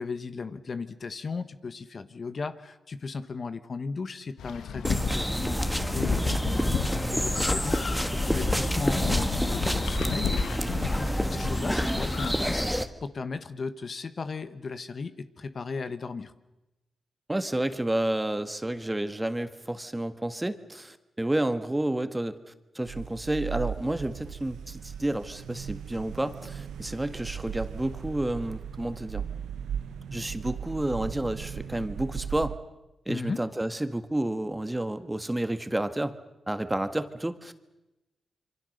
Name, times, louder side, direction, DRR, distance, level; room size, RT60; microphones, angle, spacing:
voice 1, 0.0-10.4 10.9-16.3 33.1-33.4, left 4 dB, 55° left, 11 dB, 1.3 m, -36 dB
sound 1, 4.4-12.3, left 7 dB, 90° left, 1.2 m, -34 dB
sound 2, 4.8-12.8, equal, ahead, 1.7 m, -28 dB
voice 2, 17.3-29.2 30.1-32.5 33.1-36.1 36.5-37.5, right 1 dB, 15° right, 10 dB, 1.7 m, -30 dB
sound 3, 22.9-32.6, right 8 dB, 90° right, 0.8 m, -37 dB
26.5 x 24.5 x 6.7 m, 0.98 s
cardioid pair, 65°, 0 cm